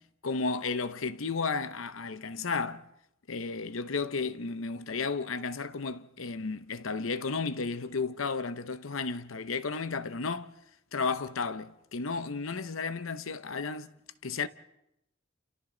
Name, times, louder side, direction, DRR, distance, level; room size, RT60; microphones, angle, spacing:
voice 1, 0.2-2.9 3.3-10.5 10.9-13.9 14.2-14.5, left 4 dB, 90° left, 0.9 m, -33 dB
29.5 x 28.5 x 3.9 m
head